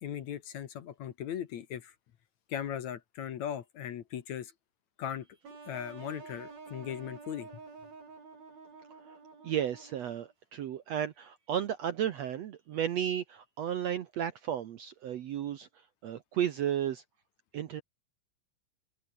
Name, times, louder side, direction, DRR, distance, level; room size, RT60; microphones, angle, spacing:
voice 1, 0.0-1.9 2.5-4.5 5.0-5.3 5.7-7.5, left 9 dB, 60° left, 2.4 m, -38 dB
sound 1, 5.4-10.3, right 4 dB, 90° right, 8.9 m, -49 dB
voice 2, 9.4-15.7 16.0-17.0 17.5-17.8, right 10 dB, 65° right, 1.8 m, -33 dB
open air
omnidirectional pair, 4.1 m